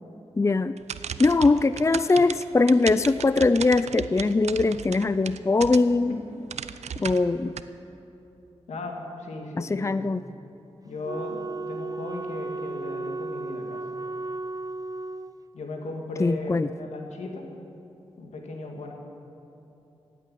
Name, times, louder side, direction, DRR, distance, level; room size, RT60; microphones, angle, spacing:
voice 1, 0.4-0.8 1.2-6.2 7.0-7.6 9.6-10.2 16.2-16.7, left 3 dB, 25° left, 14 dB, 0.4 m, -21 dB
sound 1, 0.8-6.1 6.5-7.6, right 7 dB, 80° right, 0.5 m, -35 dB
voice 2, 8.7-10.2 10.8-13.9 15.5-17.5 18.2-18.9, left 2 dB, 90° left, 1 dB, 2.2 m, -36 dB
Wind instrument woodwind instrument, 11.0-15.4, right 3 dB, 35° right, 0.5 m, -34 dB
16.0 x 8.6 x 9.6 m, 2.9 s
cardioid pair, 50°, 11 cm